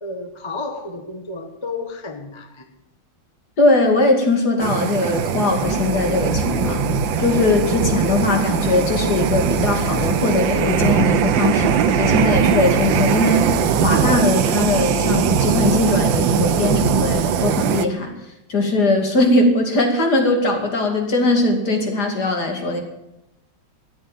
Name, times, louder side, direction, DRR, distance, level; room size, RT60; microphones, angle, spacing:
voice 1, 0.0-2.7, left 3 dB, 20° left, 6 dB, 1.0 m, -32 dB
voice 2, 3.6-6.8 7.2-18.1 18.5-22.8, left 2 dB, 55° left, 3 dB, 3.0 m, -20 dB
sound 1, 4.6-17.9, right 9 dB, 75° right, 1.5 m, -21 dB
sound 2, 5.6-17.7, right 1 dB, 80° left, 5.6 m, -27 dB
14.0 x 9.0 x 9.1 m, 0.87 s
omnidirectional pair, 2.1 m